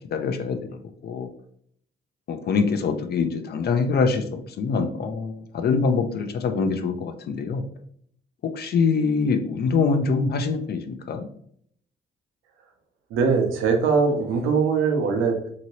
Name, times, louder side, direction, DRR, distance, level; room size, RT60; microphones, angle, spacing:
voice 1, 0.1-0.6 1.0-1.3 2.3-7.6 8.4-11.3, left 5 dB, 55° left, 7 dB, 0.4 m, -24 dB
voice 2, 13.1-15.5, right 5 dB, 85° right, 4 dB, 0.7 m, -21 dB
2.8 x 2.7 x 2.9 m, 0.64 s
cardioid pair, 90°, 20 cm